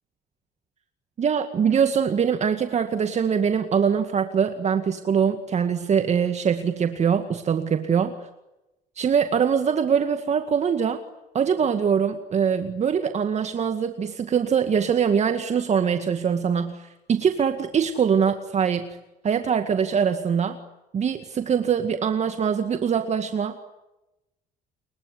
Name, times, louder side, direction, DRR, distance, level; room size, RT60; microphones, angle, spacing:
voice 1, 1.2-8.1 9.0-11.0 11.3-18.9 19.2-20.6 20.9-23.6, right 7 dB, 40° right, 7 dB, 2.0 m, -23 dB
29.5 x 23.0 x 8.6 m, 0.98 s
cardioid pair, 110°, 17 cm